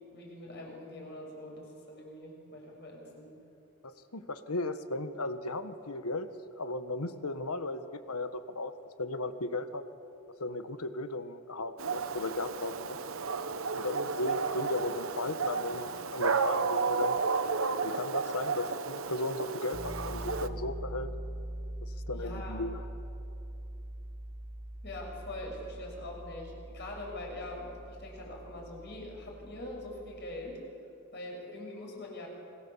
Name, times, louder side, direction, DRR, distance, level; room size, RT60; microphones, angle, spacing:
voice 1, 0.1-3.3 22.1-22.6 24.8-30.6 31.1-32.3, left 1 dB, 50° left, -1 dB, 6.7 m, -43 dB
voice 2, 3.8-6.3 6.6-8.7 9.0-9.8 10.4-13.0 13.7-17.2 17.8-21.1 21.8-22.8, left 2 dB, 80° left, 10 dB, 1.4 m, -36 dB
Dog, 11.8-20.5, right 5 dB, 65° right, 1.0 m, -32 dB
Piano, 19.7-30.5, right 1 dB, 25° right, 1.0 m, -43 dB
28.5 x 21.5 x 7.3 m, 2.8 s
head